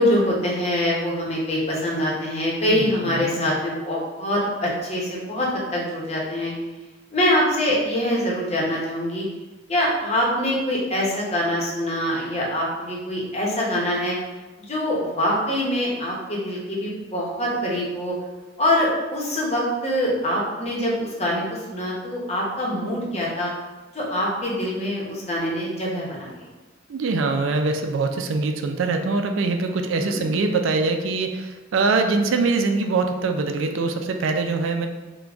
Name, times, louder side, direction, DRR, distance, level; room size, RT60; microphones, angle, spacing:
voice 1, 0.0-6.5 7.1-9.2 9.7-14.1 14.7-18.1 18.6-23.5 23.9-26.4 30.0-30.2, left 1 dB, 35° left, -3 dB, 0.8 m, -24 dB
voice 2, 2.7-3.5 26.9-34.9, right 3 dB, 85° right, 6 dB, 0.4 m, -23 dB
3.8 x 2.2 x 3.4 m, 1.2 s
head